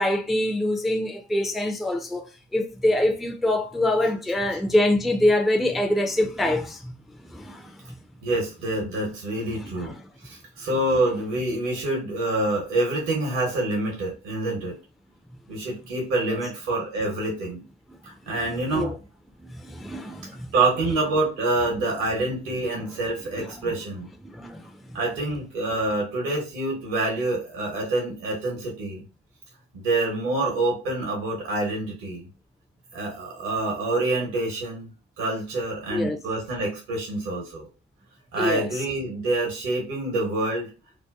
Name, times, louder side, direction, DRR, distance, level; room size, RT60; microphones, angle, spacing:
voice 1, 0.0-2.3 2.5-6.9 7.3-7.8 9.6-9.9 18.4-18.9 19.4-20.5 22.5-22.8 23.4-23.7 24.2-24.7 35.9-36.2 38.4-38.7, left 1 dB, ahead, 0.4 m, -25 dB
voice 2, 8.2-9.9 10.2-14.8 15.5-17.6 18.0-18.9 20.5-24.1 24.9-29.0 29.7-32.3 32.9-34.9 35.2-37.7 38.3-40.7, right 2 dB, 65° right, 1.1 m, -26 dB
2.8 x 2.2 x 2.3 m
figure-of-eight pair, 50°, 37 cm